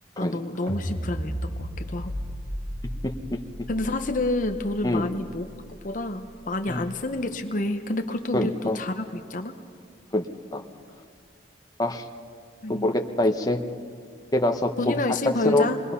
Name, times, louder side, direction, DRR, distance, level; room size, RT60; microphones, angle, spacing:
voice 1, 0.2-2.1 3.7-5.5 5.8-9.5 12.6-12.9 14.8-15.8, left 2 dB, 45° left, 6 dB, 0.8 m, -28 dB
sound 1, 0.7-7.0, equal, 50° right, 4.4 m, -35 dB
voice 2, 8.3-8.8 10.1-10.3 10.5-10.6 11.8-12.0 12.7-13.6 14.3-15.0 15.4-15.6, left 1 dB, 20° left, 4 dB, 1.0 m, -24 dB
28.0 x 21.5 x 5.7 m, 2.1 s
head